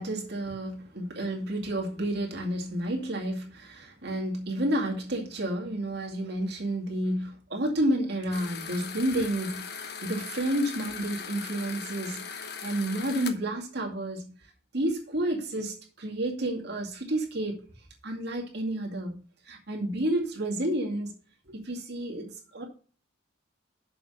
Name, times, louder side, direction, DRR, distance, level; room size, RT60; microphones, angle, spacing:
voice 1, 0.0-14.3 14.7-17.6 18.0-19.2 19.4-21.1 21.5-22.6, right 1 dB, 55° right, 2.3 m, -30 dB
sound 1, 8.3-13.3, left 6 dB, 55° left, 1.0 m, -39 dB
6.8 x 5.9 x 6.5 m
head